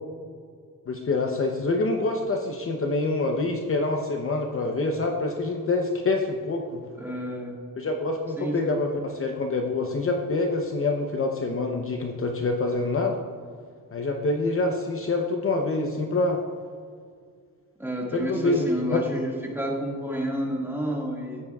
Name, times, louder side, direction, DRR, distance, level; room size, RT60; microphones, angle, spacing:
voice 1, 0.9-6.8 7.8-13.2 13.9-16.4 18.1-19.0, left 2 dB, 40° left, 3 dB, 0.7 m, -26 dB
voice 2, 7.0-7.5 8.4-8.8 17.8-21.4, equal, 5° right, -2 dB, 1.8 m, -30 dB
14.0 x 9.8 x 2.4 m, 2.1 s
wide cardioid pair, 140°, 34 cm